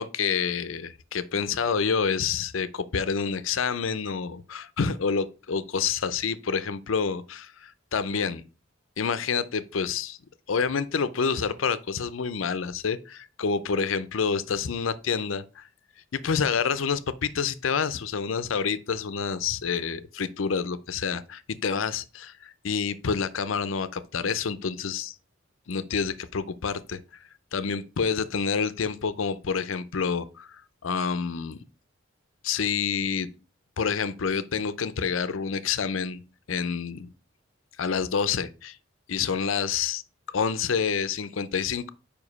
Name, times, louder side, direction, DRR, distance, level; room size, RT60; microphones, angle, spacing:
voice 1, 0.0-8.4 9.0-10.2 10.5-15.6 16.1-25.1 25.7-27.0 27.5-31.6 32.4-33.3 33.8-36.2 36.5-37.1 37.8-38.8 39.1-40.0 40.3-41.9, left 6 dB, 85° left, 0.6 m, -28 dB
5.2 x 5.0 x 5.3 m
head